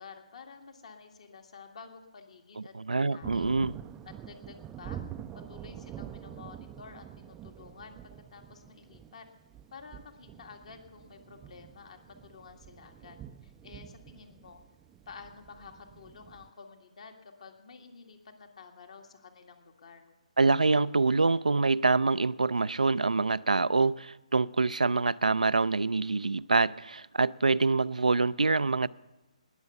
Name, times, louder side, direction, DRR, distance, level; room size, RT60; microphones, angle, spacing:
voice 1, 0.0-2.7 3.1-3.5 4.0-5.0 5.5-8.0 8.3-9.2 9.7-14.6 15.1-20.1, left 5 dB, 60° left, 1.9 m, -50 dB
voice 2, 2.6-3.8 20.4-28.9, right 3 dB, 85° right, 0.3 m, -26 dB
Thunder, 3.2-16.5, right 10 dB, 15° right, 0.4 m, -47 dB
19.0 x 6.9 x 6.7 m
figure-of-eight pair, 140°, 4 cm